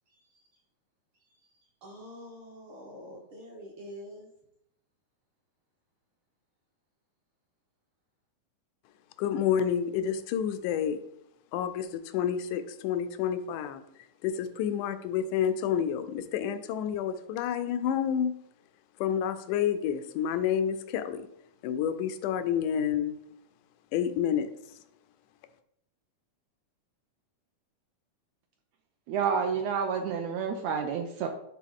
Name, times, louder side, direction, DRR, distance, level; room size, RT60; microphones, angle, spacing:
voice 1, 1.8-4.3, equal, 55° right, -1 dB, 1.5 m, -45 dB
voice 2, 9.2-11.0 11.5-13.8 14.2-18.3 19.0-21.2 21.6-23.2 23.9-24.5, left 9 dB, 90° left, 11 dB, 2.1 m, -29 dB
voice 3, 29.1-31.3, right 6 dB, 80° right, 4 dB, 1.6 m, -29 dB
10.5 x 3.7 x 3.6 m, 0.77 s
omnidirectional pair, 3.5 m